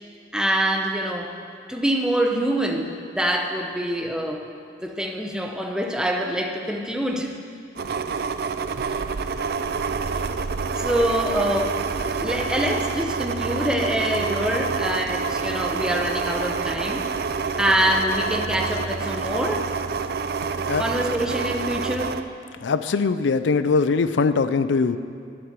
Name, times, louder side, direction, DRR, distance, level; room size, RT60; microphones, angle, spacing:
voice 1, 0.3-1.3 1.7-4.5 4.8-7.3 10.8-17.1 17.6-19.7 20.8-22.2, equal, 5° right, 2 dB, 0.8 m, -25 dB
sound 1, 7.8-22.2, right 5 dB, 55° right, 0.4 m, -27 dB
voice 2, 22.6-25.0, left 4 dB, 80° left, 12 dB, 0.4 m, -21 dB
11.0 x 8.1 x 7.5 m, 2.3 s
head